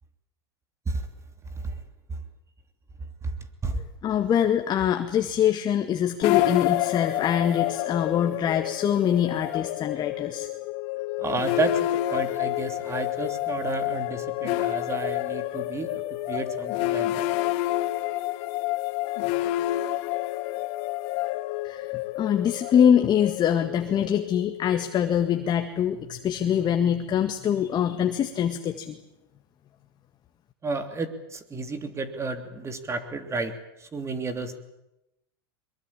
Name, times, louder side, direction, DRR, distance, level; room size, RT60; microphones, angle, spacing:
voice 1, 4.0-10.5 21.6-29.0, left 9 dB, 35° left, 6 dB, 1.9 m, -24 dB
sound 1, 6.2-25.3, left 16 dB, 55° left, 1.5 m, -29 dB
voice 2, 11.2-17.3 30.6-34.6, right 3 dB, 20° right, 8 dB, 3.1 m, -31 dB
22.5 x 22.0 x 8.8 m, 0.91 s
hypercardioid pair, 105°, 13 cm